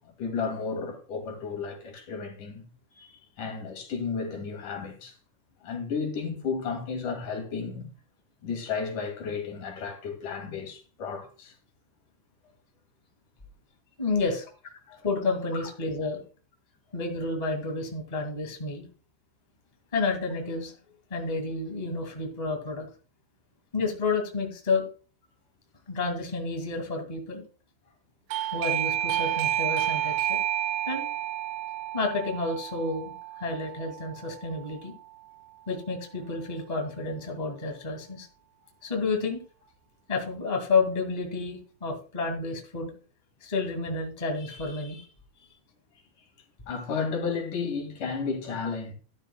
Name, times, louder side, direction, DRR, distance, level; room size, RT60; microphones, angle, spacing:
voice 1, 0.2-2.6 3.0-5.1 5.6-7.9 8.4-11.5 14.9-15.0 15.5-15.6 46.7-48.9, left 5 dB, 90° left, 4.0 m, -33 dB
voice 2, 14.0-14.5 15.0-16.2 16.9-18.9 19.9-20.7 21.1-22.9 23.7-24.8 25.9-27.4 28.5-30.4 30.9-31.1 31.9-33.1 33.4-34.9 35.7-38.3 38.8-39.4 40.1-42.9 43.4-45.1, left 3 dB, 15° left, 1.8 m, -30 dB
Doorbell, 28.3-34.8, right 13 dB, 85° right, 1.4 m, -30 dB
12.5 x 12.5 x 2.3 m
omnidirectional pair, 3.5 m